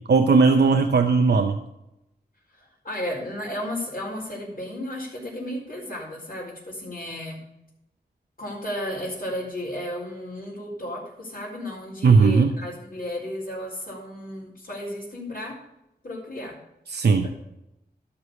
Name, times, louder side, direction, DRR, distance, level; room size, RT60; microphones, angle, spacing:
voice 1, 0.0-1.6 12.0-12.5 16.9-17.3, right 4 dB, 80° right, 5 dB, 0.7 m, -17 dB
voice 2, 2.6-7.4 8.4-15.6 16.0-16.6 17.2-17.3, left 1 dB, 60° left, -9 dB, 4.1 m, -33 dB
12.5 x 4.9 x 8.2 m, 0.86 s
cardioid pair, 45°, 17 cm